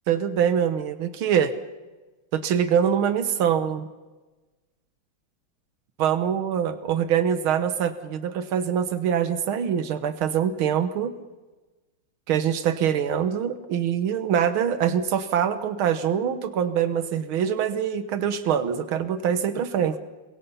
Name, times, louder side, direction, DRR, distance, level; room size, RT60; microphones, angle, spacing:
voice 1, 0.1-1.5 2.3-3.9 6.0-11.1 12.3-20.0, right 8 dB, 90° right, 11 dB, 2.0 m, -24 dB
29.0 x 22.5 x 5.6 m, 1.2 s
omnidirectional pair, 2.2 m